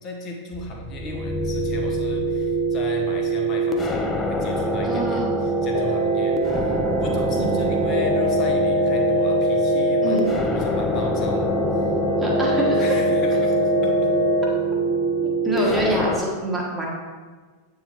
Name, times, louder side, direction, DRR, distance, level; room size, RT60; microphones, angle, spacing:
voice 1, 0.0-11.9 12.7-14.1 15.5-15.8, left 1 dB, 35° left, 1 dB, 1.1 m, -35 dB
sound 1, 0.5-16.2, right 2 dB, 15° left, 0.5 m, -24 dB
voice 2, 4.8-5.3 7.3-7.5 10.0-10.2 12.2-12.8 15.2-16.9, right 1 dB, 5° right, -5 dB, 1.6 m, -25 dB
sound 2, 5.7-14.5, left 1 dB, 75° left, 0.6 m, -24 dB
Wind instrument woodwind instrument, 11.0-15.3, left 1 dB, 60° left, 1.5 m, -41 dB
8.5 x 3.8 x 3.0 m, 1.4 s
figure-of-eight pair, 90°, 0 cm